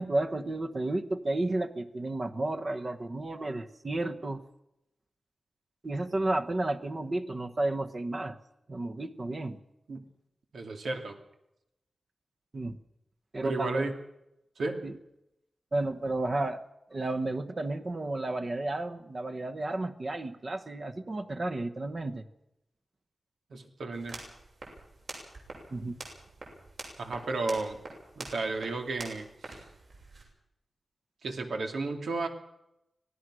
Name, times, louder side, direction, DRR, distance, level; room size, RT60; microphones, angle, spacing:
voice 1, 0.0-4.4 5.8-8.4 8.7-9.6 12.5-12.8 13.3-13.9 14.8-14.9 15.7-16.6 16.9-22.2 25.7-26.0, right 2 dB, 35° right, 6 dB, 1.1 m, -32 dB
voice 2, 10.5-11.2 13.4-13.9 14.6-14.8 23.5-24.2 27.0-27.8 28.2-29.6 31.2-32.3, right 3 dB, 90° right, 4 dB, 2.7 m, -33 dB
sound 1, 23.9-30.2, right 2 dB, 60° right, 7.1 m, -46 dB
25.5 x 18.0 x 6.3 m, 0.86 s
wide cardioid pair, 160°, 0 cm